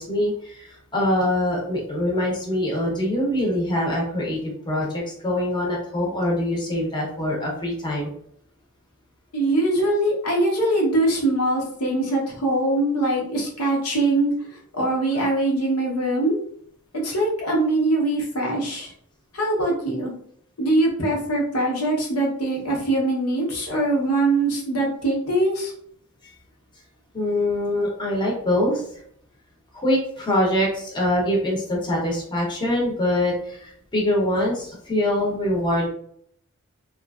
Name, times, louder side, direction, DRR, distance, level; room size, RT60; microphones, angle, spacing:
voice 1, 0.0-4.9 5.2-8.1 27.1-28.8 29.7-35.9, left 1 dB, 20° left, -3 dB, 0.7 m, -24 dB
voice 2, 9.3-16.4 17.0-18.9 19.3-20.1 20.6-25.7, right 1 dB, 80° left, -2 dB, 0.9 m, -22 dB
2.9 x 2.3 x 2.4 m, 0.65 s
head